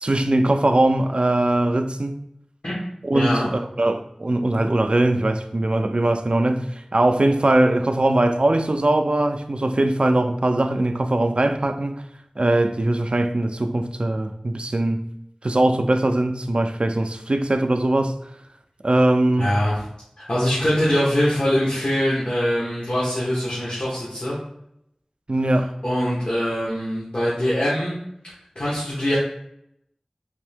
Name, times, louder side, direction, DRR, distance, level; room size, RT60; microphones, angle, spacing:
voice 1, 0.0-2.2 3.0-12.0 12.4-15.0 15.4-18.1 18.8-19.5 25.3-25.8, right 1 dB, 60° right, 0.3 m, -21 dB
voice 2, 3.1-3.5 19.4-19.8 20.3-24.4 25.8-28.0 28.5-29.2, equal, 65° left, 1.1 m, -23 dB
3.5 x 2.7 x 3.4 m
wide cardioid pair, 45°, 2 cm